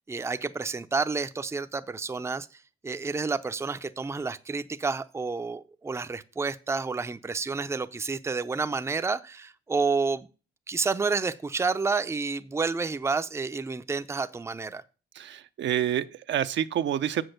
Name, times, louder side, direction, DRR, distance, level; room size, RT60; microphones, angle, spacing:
voice 1, 0.1-2.5 2.8-10.3 10.7-14.8, right 4 dB, 15° right, 0.5 m, -29 dB
voice 2, 15.2-17.2, right 10 dB, 65° right, 0.6 m, -28 dB
7.6 x 6.3 x 6.5 m
cardioid pair, 90°, 20 cm